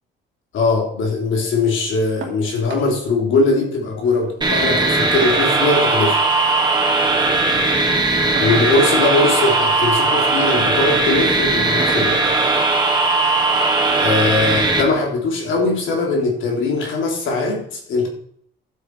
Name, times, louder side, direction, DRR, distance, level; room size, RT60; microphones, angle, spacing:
voice 1, 0.5-6.2 8.4-12.2 14.0-18.1, left 3 dB, 75° left, 1 dB, 3.5 m, -20 dB
sound 1, 2.2-2.4 2.7-2.9 3.3-3.4 3.7-4.3 5.2-6.0 7.2-7.4 8.4-9.0 10.1-10.4 10.8-11.0 11.8-12.1 13.4-13.5 14.0-14.1, right 6 dB, 70° right, 2.4 m, -34 dB
sound 2, 4.4-14.8, right 3 dB, 20° right, 2.7 m, -18 dB
12.5 x 7.8 x 4.7 m, 0.65 s
cardioid pair, 90°, 20 cm